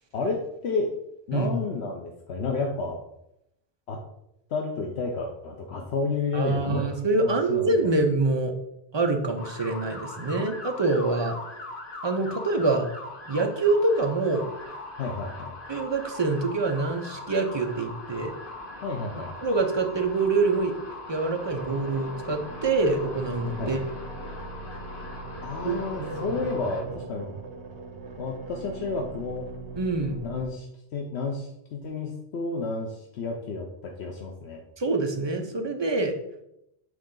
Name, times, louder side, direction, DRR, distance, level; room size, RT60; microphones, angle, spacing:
voice 1, 0.1-0.9 1.3-3.0 3.9-4.0 4.5-7.7 15.0-15.5 18.8-19.3 23.6-23.7 25.4-27.3 28.2-29.5 30.2-30.7 30.9-34.6, left 4 dB, 75° left, 1 dB, 1.0 m, -31 dB
voice 2, 6.3-8.5 8.9-11.4 12.0-12.9 13.3-14.4 15.7-18.3 19.4-20.7 21.1-23.8 25.6-26.1 29.8-30.2 34.8-36.1, right 3 dB, 30° right, 3 dB, 0.7 m, -25 dB
sound 1, 9.4-26.8, left 2 dB, 55° left, 1.2 m, -40 dB
sound 2, 21.5-30.5, right 3 dB, 90° right, 1.1 m, -40 dB
7.8 x 3.8 x 3.8 m, 0.80 s
omnidirectional pair, 1.1 m